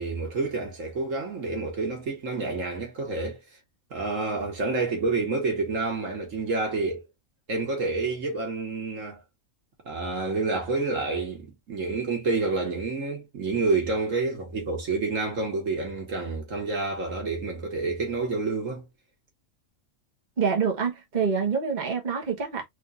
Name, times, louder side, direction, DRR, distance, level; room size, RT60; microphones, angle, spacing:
voice 1, 0.0-3.4 3.9-7.0 7.5-9.2 9.9-18.9, right 3 dB, 65° right, 1.9 m, -28 dB
voice 2, 20.4-22.7, right 6 dB, 35° right, 1.3 m, -26 dB
3.9 x 3.5 x 2.4 m
omnidirectional pair, 1.4 m